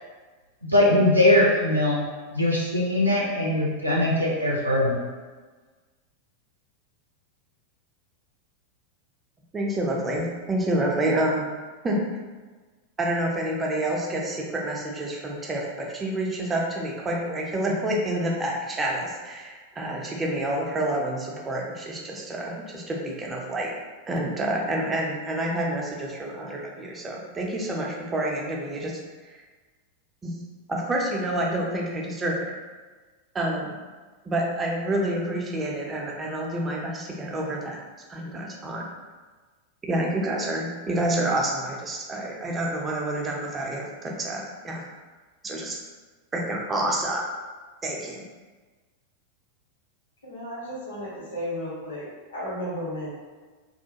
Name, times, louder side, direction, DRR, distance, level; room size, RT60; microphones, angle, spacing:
voice 1, 0.6-2.0 2.3-5.0, left 1 dB, 85° right, -5 dB, 0.4 m, -21 dB
voice 2, 9.5-11.4 11.8-12.0 13.0-23.7 24.1-28.9 30.2-30.3 30.7-32.5 33.3-33.8 34.3-37.8 38.1-38.8 39.8-44.9 45.4-45.8 46.3-47.2 47.8-48.2, right 1 dB, 20° right, -2 dB, 0.5 m, -28 dB
voice 3, 50.2-52.0 52.3-53.1, equal, 70° left, -7 dB, 1.1 m, -33 dB
2.3 x 2.1 x 2.8 m, 1.3 s
figure-of-eight pair, 90°, 0 cm